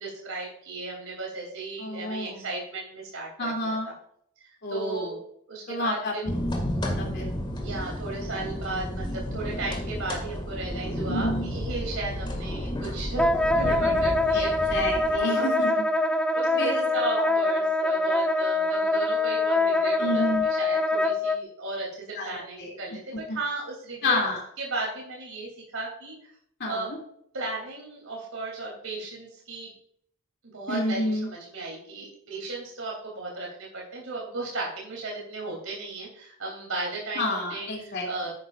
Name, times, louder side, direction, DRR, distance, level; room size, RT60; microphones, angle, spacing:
voice 1, 0.0-3.8 4.4-5.2 5.5-6.2 7.6-13.3 13.5-14.5 15.1-15.5 16.3-20.2 20.6-24.2 24.6-26.1 26.6-26.9 27.3-29.7 30.5-38.3, right 2 dB, 75° right, -2 dB, 3.2 m, -35 dB
voice 2, 1.8-2.4 3.4-3.9 4.6-5.2 5.7-6.1 6.8-7.3 11.1-11.5 14.3-15.8 16.6-16.8 17.2-17.3 20.0-20.4 22.2-22.7 23.3-23.4 24.0-24.4 26.6-27.0 30.7-31.3 37.1-38.1, left 1 dB, 50° left, -1 dB, 2.9 m, -29 dB
sound 1, 6.3-15.2, equal, 25° left, 2.1 m, -32 dB
Wind instrument woodwind instrument, 13.2-21.4, left 2 dB, 5° left, 0.4 m, -24 dB
11.0 x 9.4 x 2.5 m, 0.66 s
head